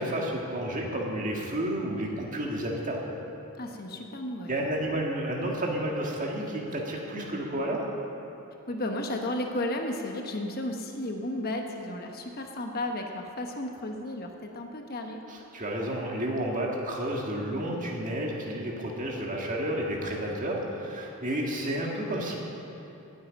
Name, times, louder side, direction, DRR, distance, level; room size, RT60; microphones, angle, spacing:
voice 1, 0.0-3.0 4.5-7.8 15.3-22.4, right 1 dB, 35° right, -1 dB, 1.8 m, -31 dB
voice 2, 3.6-4.6 8.7-15.2, left 1 dB, 45° left, 3 dB, 1.1 m, -33 dB
19.5 x 8.5 x 5.3 m, 2.9 s
head